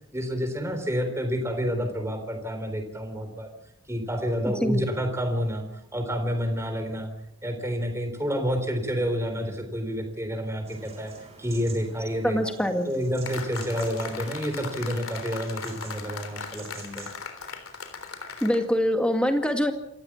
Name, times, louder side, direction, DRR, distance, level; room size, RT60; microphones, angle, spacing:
voice 1, 0.1-3.5 3.9-5.7 5.9-7.1 7.4-11.1 11.4-12.5 12.9-17.1, equal, 15° right, 6 dB, 3.7 m, -29 dB
sound 1, 10.6-17.2, right 4 dB, 30° right, 6.0 m, -49 dB
voice 2, 12.2-12.9 18.4-19.7, equal, 5° left, 5 dB, 2.1 m, -24 dB
sound 2, 13.2-18.6, left 5 dB, 90° left, 3.6 m, -38 dB
28.0 x 15.0 x 7.3 m, 0.83 s
head